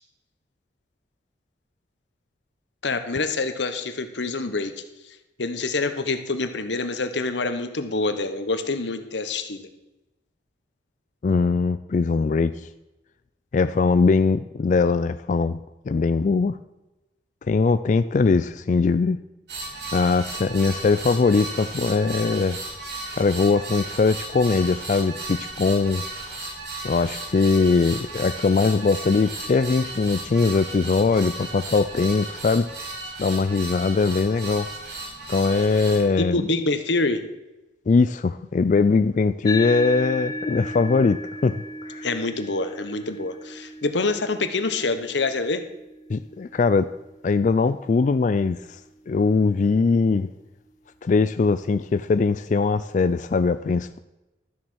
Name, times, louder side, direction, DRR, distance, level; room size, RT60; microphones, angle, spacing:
voice 1, 2.8-4.7 5.4-9.7 36.2-37.2 42.0-45.6, left 3 dB, 90° left, 9 dB, 1.1 m, -26 dB
voice 2, 11.2-12.6 13.5-15.6 15.9-16.6 17.5-19.2 19.9-22.6 23.2-26.0 26.8-32.7 33.2-34.7 35.3-36.5 37.9-42.1 46.1-46.9 47.2-48.8 49.1-50.3 51.0-54.0, left 4 dB, 45° left, 12 dB, 0.3 m, -21 dB
sound 1, 19.5-36.0, right 2 dB, 70° right, 3.2 m, -35 dB
sound 2, 39.4-48.2, left 2 dB, 20° left, 0.7 m, -36 dB
12.5 x 7.4 x 6.3 m, 1.0 s
head